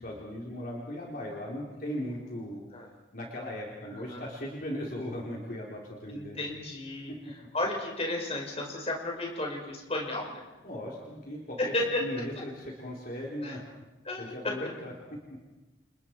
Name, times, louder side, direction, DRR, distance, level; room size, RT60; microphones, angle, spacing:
voice 1, 0.0-2.6 3.1-6.4 7.1-7.2 10.6-13.6 14.2-14.9, equal, 45° left, -3 dB, 4.3 m, -38 dB
voice 2, 3.9-4.2 6.1-7.1 7.5-10.4 11.6-12.0 13.4-13.6 14.1-14.7, left 2 dB, 30° left, 0 dB, 5.5 m, -33 dB
30.0 x 29.5 x 4.8 m, 1.1 s
head